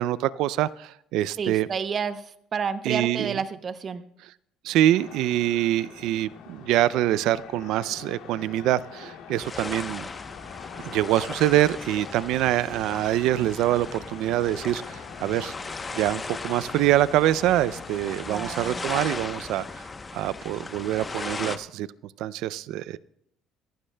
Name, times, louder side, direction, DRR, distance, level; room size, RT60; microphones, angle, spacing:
voice 1, 0.0-1.7 2.8-3.4 4.2-4.3 4.6-10.0 10.9-15.5 15.9-19.9 20.1-21.9 22.2-23.0, right 13 dB, 75° right, 18 dB, 0.3 m, -25 dB
voice 2, 1.4-2.2 2.5-4.0 18.3-18.9, right 6 dB, 40° right, 12 dB, 0.7 m, -30 dB
sound 1, 4.9-18.8, left 8 dB, 80° left, 2.3 m, -45 dB
sound 2, 9.4-21.6, left 3 dB, 25° left, 0.8 m, -37 dB
24.0 x 11.5 x 2.2 m, 0.72 s
cardioid pair, 100°, 0 cm